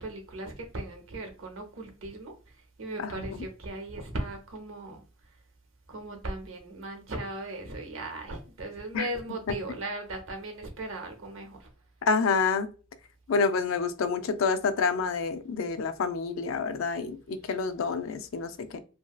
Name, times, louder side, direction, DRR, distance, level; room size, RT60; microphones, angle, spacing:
voice 1, 0.0-2.3 2.8-5.0 5.9-11.7, right 2 dB, 90° right, 0.8 m, -37 dB
voice 2, 12.0-12.7 13.3-18.8, left 5 dB, 80° left, 0.4 m, -28 dB
2.9 x 2.6 x 2.3 m
head